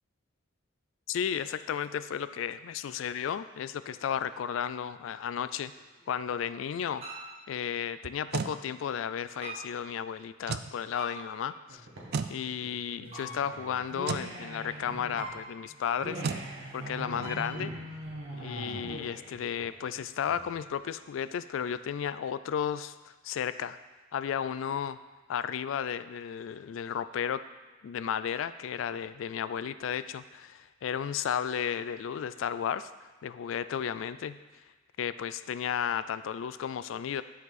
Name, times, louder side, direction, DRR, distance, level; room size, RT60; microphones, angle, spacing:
voice 1, 1.1-5.7 6.1-7.1 7.5-11.9 12.3-16.2 16.7-17.7 18.3-23.8 24.1-25.0 25.3-27.5 27.8-32.9 33.2-34.6 35.0-37.2, left 8 dB, 80° left, 14 dB, 0.3 m, -33 dB
sound 1, 2.2-2.3 3.8-4.5 5.5-6.2 7.0-7.5 9.4-9.9 10.9-11.6 13.1-13.8 15.2-15.9 17.2-17.8, right 1 dB, 30° right, 1.4 m, -45 dB
sound 2, 8.0-8.6 10.4-10.7 12.1-12.4 14.0-14.3 16.2-16.5, right 5 dB, 55° right, 0.4 m, -32 dB
sound 3, 11.7-20.7, right 1 dB, 85° right, 1.6 m, -42 dB
10.5 x 4.7 x 4.1 m, 1.3 s
head